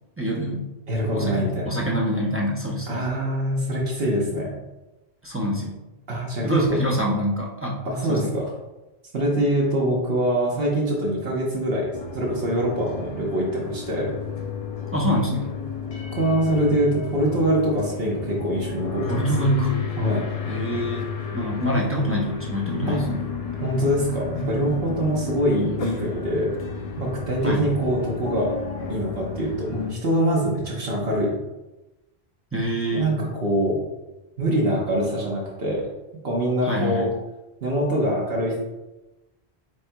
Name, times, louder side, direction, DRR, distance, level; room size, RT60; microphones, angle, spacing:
voice 1, 0.2-0.7 1.1-3.0 5.2-5.8 6.4-7.8 8.1-8.3 14.9-15.5 19.1-19.7 20.5-21.0 21.3-23.2 27.4-27.7 32.5-33.1 36.6-37.1, equal, 15° right, -3 dB, 0.5 m, -25 dB
voice 2, 0.9-1.7 2.9-4.5 6.1-6.8 7.8-8.4 9.1-14.1 16.1-19.2 20.0-20.2 22.9-23.1 23.6-26.5 27.0-28.5 28.9-31.3 32.9-33.8 34.4-35.8 36.2-37.1 37.6-38.6, right 1 dB, 65° right, -3 dB, 1.1 m, -24 dB
sound 1, 11.9-29.9, left 5 dB, 45° left, 0.5 m, -32 dB
8.0 x 2.8 x 2.2 m, 1.0 s
omnidirectional pair, 1.1 m